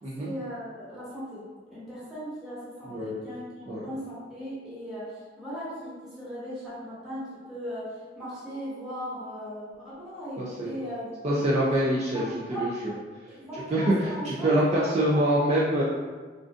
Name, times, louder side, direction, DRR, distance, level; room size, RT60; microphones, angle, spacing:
voice 1, 0.2-11.7 12.1-12.2 12.5-12.7 13.3-14.5 14.8-15.2, equal, 5° right, -11 dB, 1.1 m, -38 dB
voice 2, 10.4-10.7 11.2-12.9 13.7-15.8, right 1 dB, 35° right, -7 dB, 0.4 m, -25 dB
3.6 x 2.5 x 2.4 m, 1.4 s
head